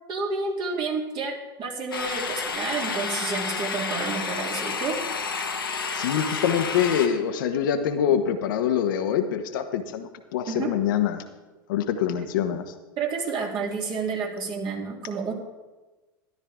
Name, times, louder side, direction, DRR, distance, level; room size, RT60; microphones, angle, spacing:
voice 1, 0.1-5.0 10.5-10.7 13.0-15.3, right 4 dB, 40° right, -1 dB, 3.2 m, -30 dB
sound 1, 1.9-7.1, left 5 dB, 85° left, 1.5 m, -30 dB
voice 2, 5.9-11.2 11.7-12.7, left 9 dB, 65° left, 7 dB, 1.2 m, -25 dB
13.5 x 12.0 x 3.6 m, 1.2 s
hypercardioid pair, 85°, 12 cm